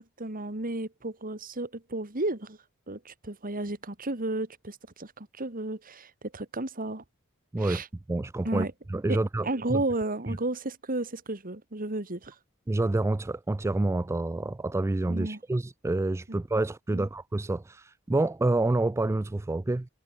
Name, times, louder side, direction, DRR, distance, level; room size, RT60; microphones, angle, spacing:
voice 1, 0.2-2.6 2.9-7.0 7.6-7.9 8.4-8.7 9.1-12.4 15.1-15.4 16.3-16.4 16.9-17.1, right 2 dB, 40° right, 2.7 m, -33 dB
voice 2, 8.1-9.8 12.7-19.9, right 2 dB, 15° right, 0.3 m, -28 dB
head